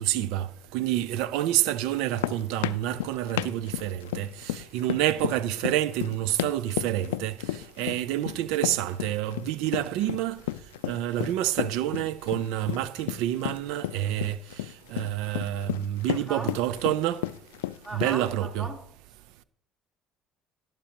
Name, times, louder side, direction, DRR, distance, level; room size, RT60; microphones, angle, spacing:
voice 1, 0.0-10.4 10.8-14.4 14.9-17.2 17.9-18.7, right 13 dB, 75° right, 0.5 m, -28 dB
sound 1, 1.9-18.3, left 15 dB, 90° left, 0.3 m, -33 dB
voice 2, 16.1-16.5 17.8-18.8, right 2 dB, 30° right, 3.6 m, -38 dB
17.5 x 8.9 x 3.0 m
hypercardioid pair, 75°, 0 cm